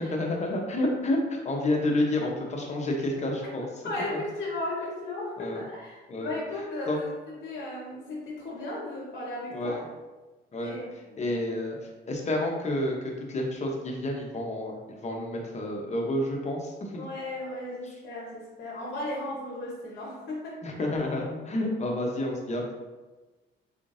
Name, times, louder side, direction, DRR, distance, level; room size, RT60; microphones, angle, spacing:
voice 1, 0.1-3.7 4.1-4.2 5.4-5.6 6.1-6.3 6.9-7.0 9.5-9.8 10.5-10.8 11.2-11.8 12.1-17.0 20.6-22.7, left 1 dB, 35° left, 0 dB, 0.9 m, -29 dB
voice 2, 3.8-7.1 7.4-9.8 10.6-10.8 11.1-11.3 16.9-20.6, left 2 dB, 55° left, -4 dB, 1.0 m, -35 dB
3.7 x 3.6 x 2.6 m, 1.2 s
cardioid pair, 90°, 20 cm